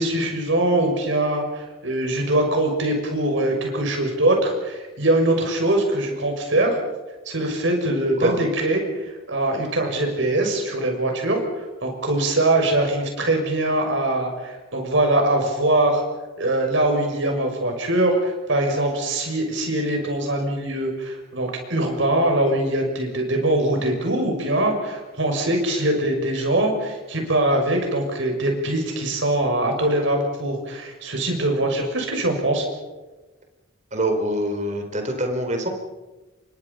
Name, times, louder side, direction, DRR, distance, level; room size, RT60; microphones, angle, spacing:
voice 1, 0.0-6.8 7.2-16.0 16.4-32.6, right 1 dB, 60° right, 2 dB, 6.5 m, -22 dB
voice 2, 33.9-35.7, right 1 dB, 35° right, 5 dB, 3.7 m, -24 dB
29.0 x 24.0 x 5.6 m, 1.2 s
head